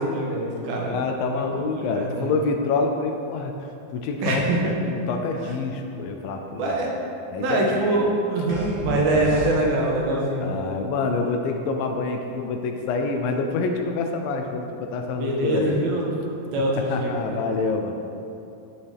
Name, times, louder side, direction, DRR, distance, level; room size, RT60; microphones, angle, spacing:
voice 1, 0.0-1.0 1.3-1.6 1.9-2.3 4.2-4.6 6.5-6.9 7.4-10.5 15.1-16.0 16.5-17.4, right 2 dB, 80° right, -2 dB, 3.1 m, -24 dB
voice 2, 0.9-3.5 3.9-6.7 7.3-8.1 8.9-9.6 10.4-15.9 16.9-18.0, left 4 dB, 80° left, 4 dB, 2.2 m, -27 dB
sound 1, 8.5-10.0, right 1 dB, 15° right, 1.3 m, -34 dB
14.5 x 6.9 x 3.5 m, 2.7 s
omnidirectional pair, 4.3 m